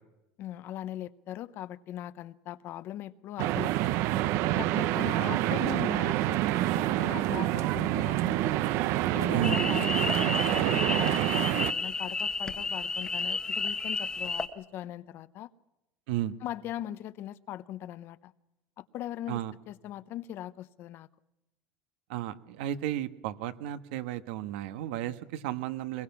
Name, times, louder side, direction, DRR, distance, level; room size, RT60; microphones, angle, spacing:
voice 1, 0.4-3.8 4.4-6.4 6.7-8.7 9.1-15.5 16.4-18.3 18.8-19.4 19.7-21.1, left 13 dB, 40° left, 15 dB, 0.7 m, -40 dB
sound 1, 3.4-11.7, right 15 dB, 50° right, 0.7 m, -27 dB
voice 2, 9.3-9.6 16.1-16.4 19.3-19.5 22.1-26.0, right 12 dB, 75° right, 10 dB, 1.3 m, -33 dB
sound 2, 9.4-14.5, left 4 dB, 15° left, 1.1 m, -32 dB
22.5 x 21.5 x 5.9 m, 0.95 s
cardioid pair, 155°, 6 cm